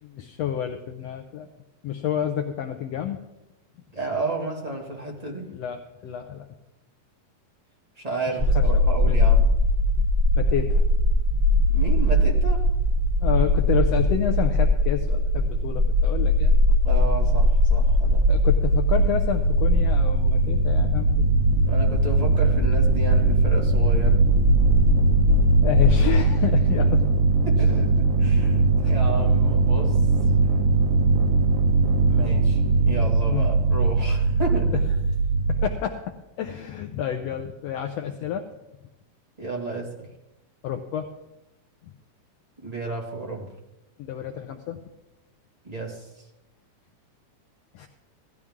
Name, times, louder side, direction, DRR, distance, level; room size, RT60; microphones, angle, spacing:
voice 1, 0.0-1.5 1.8-3.2 5.5-6.5 8.3-9.2 10.4-10.8 11.3-11.6 13.2-16.5 18.3-21.2 25.6-27.0 27.6-27.8 28.0-28.1 28.5-29.0 33.3-33.5 34.7-34.8 35.5-38.5 40.6-41.1 44.0-44.8 47.7-47.9, left 9 dB, 75° left, 5 dB, 1.6 m, -29 dB
voice 2, 3.9-5.6 8.0-9.5 11.7-12.6 16.8-18.4 21.6-24.3 27.4-28.6 28.9-30.0 32.1-34.7 39.4-40.0 42.6-43.5 45.6-46.0, right 2 dB, 15° right, -1 dB, 1.6 m, -32 dB
sound 1, 8.4-26.2, left 1 dB, 60° right, 0.3 m, -21 dB
sound 2, 17.9-35.7, right 3 dB, 80° right, 2.8 m, -21 dB
17.0 x 13.5 x 3.6 m, 0.93 s
omnidirectional pair, 3.4 m